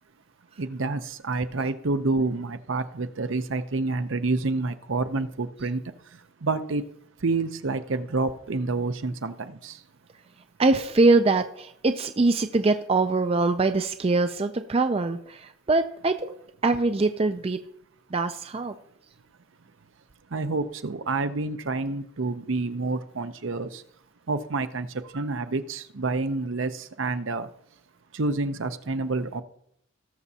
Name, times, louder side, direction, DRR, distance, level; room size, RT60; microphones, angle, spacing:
voice 1, 0.6-5.8 6.4-6.8 7.2-9.8 20.3-23.8 24.3-27.5 28.1-29.4, right 3 dB, 65° right, 11 dB, 0.7 m, -28 dB
voice 2, 10.6-16.3 16.6-17.6 18.1-18.8, right 3 dB, 25° right, 8 dB, 0.4 m, -23 dB
18.5 x 7.1 x 2.8 m, 0.70 s
head